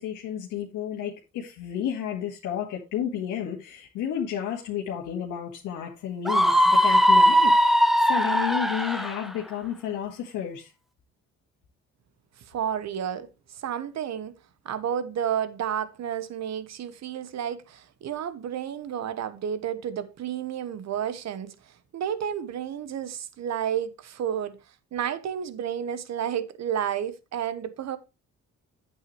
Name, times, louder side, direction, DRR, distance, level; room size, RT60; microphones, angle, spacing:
voice 1, 0.0-10.7, left 9 dB, 85° left, 1.8 m, -32 dB
Screaming, 6.3-9.2, equal, ahead, 0.8 m, -19 dB
voice 2, 12.5-14.3 14.6-21.5 21.9-24.6 24.9-28.0, right 9 dB, 60° right, 1.1 m, -31 dB
8.9 x 8.3 x 3.1 m
cardioid pair, 90°, 30 cm